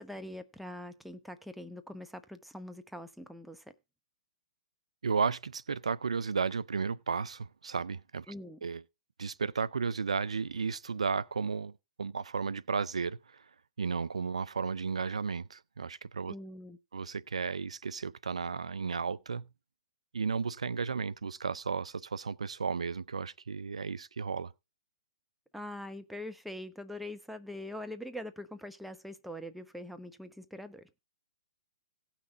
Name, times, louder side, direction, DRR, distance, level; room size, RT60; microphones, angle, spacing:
voice 1, 0.0-3.7 8.3-8.6 16.3-16.8 25.5-30.9, left 1 dB, ahead, 0.9 m, -43 dB
voice 2, 5.0-8.3 8.6-8.8 9.2-11.7 12.0-13.4 13.8-16.3 16.9-19.5 20.1-24.5, right 5 dB, 90° right, 0.5 m, -33 dB
17.5 x 5.9 x 3.7 m
hypercardioid pair, 130°, 3 cm